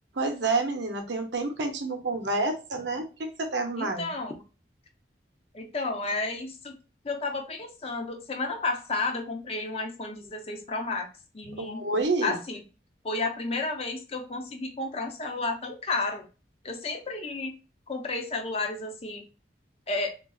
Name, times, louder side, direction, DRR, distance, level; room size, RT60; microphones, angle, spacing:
voice 1, 0.1-4.1 11.5-12.4, right 3 dB, 85° right, 5 dB, 0.7 m, -29 dB
voice 2, 3.8-4.4 5.5-6.8 7.0-11.1 11.3-11.8 12.2-12.6 13.0-16.3 16.6-17.5 17.9-19.2 19.9-20.1, left 3 dB, 35° left, 3 dB, 0.6 m, -32 dB
3.8 x 2.5 x 2.3 m, 0.33 s
head